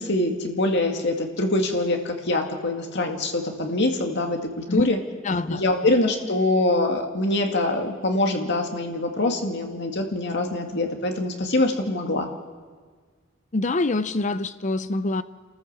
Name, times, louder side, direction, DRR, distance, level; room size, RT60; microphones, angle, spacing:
voice 1, 0.0-5.0 5.5-12.3, left 2 dB, 60° left, 3 dB, 2.1 m, -24 dB
voice 2, 5.2-5.6 13.5-15.2, left 2 dB, 35° left, 13 dB, 0.7 m, -25 dB
28.0 x 13.5 x 7.3 m, 1.5 s
head